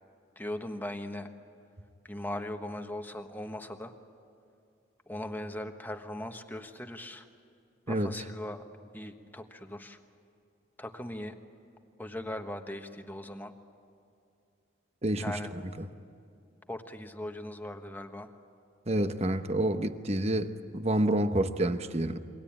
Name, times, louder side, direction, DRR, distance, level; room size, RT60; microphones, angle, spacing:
voice 1, 0.3-1.3 2.0-3.9 5.1-7.3 7.9-8.6 8.9-10.0 10.8-11.4 12.0-13.5 15.2-15.5 16.7-18.3, left 1 dB, 10° left, 6 dB, 1.3 m, -39 dB
voice 2, 15.0-15.4 18.9-22.2, right 1 dB, 35° right, 9 dB, 1.0 m, -28 dB
28.0 x 23.0 x 8.9 m, 2.5 s
head